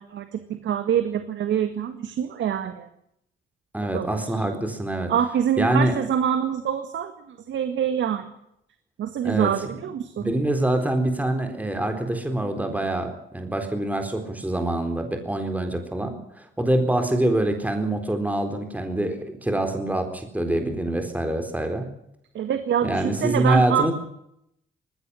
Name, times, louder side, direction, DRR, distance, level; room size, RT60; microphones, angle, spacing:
voice 1, 0.0-2.9 3.9-4.2 5.1-7.1 7.5-8.2 9.0-10.3 22.3-23.8, right 9 dB, 70° right, 9 dB, 1.9 m, -25 dB
voice 2, 3.7-5.1 5.6-6.0 9.2-9.5 10.2-21.9 22.8-23.9, right 1 dB, 10° right, 6 dB, 4.0 m, -25 dB
20.0 x 16.0 x 9.8 m, 0.76 s
cardioid pair, 90°, 20 cm